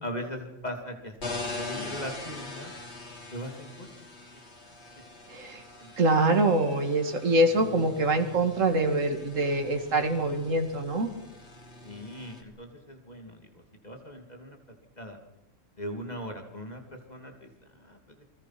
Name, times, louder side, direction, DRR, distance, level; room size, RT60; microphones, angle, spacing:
voice 1, 0.0-1.1 1.4-2.7 3.3-3.9 5.8-5.9 11.8-14.6 15.0-15.2 15.8-17.5 17.7-18.2, equal, 30° left, 4 dB, 3.1 m, -39 dB
sound 1, 1.2-12.4, left 3 dB, 55° left, 3.2 m, -42 dB
voice 2, 5.3-5.6 6.0-11.1, right 2 dB, 75° right, 5 dB, 2.5 m, -24 dB
29.0 x 20.5 x 6.0 m, 0.90 s
omnidirectional pair, 1.3 m